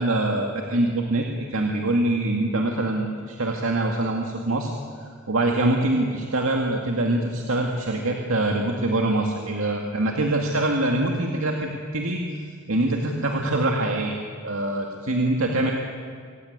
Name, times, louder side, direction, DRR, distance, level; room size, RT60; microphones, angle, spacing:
voice 1, 0.0-4.7 5.3-12.2 12.7-14.2 14.4-15.7, right 2 dB, 90° right, 2 dB, 2.1 m, -24 dB
25.5 x 16.5 x 9.5 m, 2.1 s
head